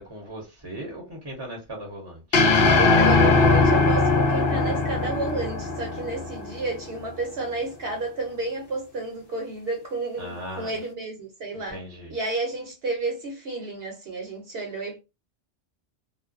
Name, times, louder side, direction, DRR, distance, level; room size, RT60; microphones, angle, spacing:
voice 1, 0.0-2.4 10.2-10.8 11.5-12.1, right 1 dB, 25° right, 0.6 m, -38 dB
sound 1, 2.3-6.7, left 3 dB, 60° left, 0.7 m, -20 dB
voice 2, 2.7-11.8 12.1-15.0, right 3 dB, 65° right, 0.8 m, -31 dB
2.4 x 2.1 x 2.4 m
omnidirectional pair, 1.2 m